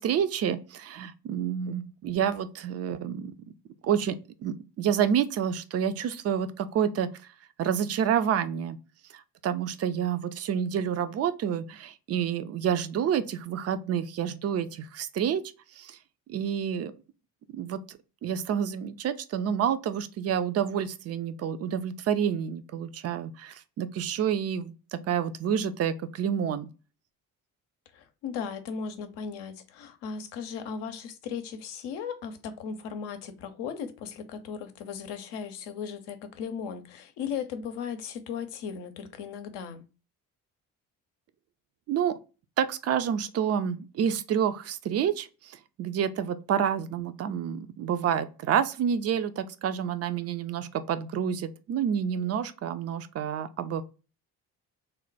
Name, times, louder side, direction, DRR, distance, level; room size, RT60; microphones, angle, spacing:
voice 1, 0.0-3.3 3.8-4.2 4.4-7.1 7.6-8.8 9.1-15.4 15.8-16.0 16.3-16.9 17.5-24.7 25.1-26.7 41.9-42.2 42.6-53.8, right 8 dB, 35° right, 0.4 m, -28 dB
voice 2, 27.9-39.8, left 6 dB, 60° left, 0.7 m, -37 dB
3.2 x 2.2 x 3.9 m
hypercardioid pair, 50°, 46 cm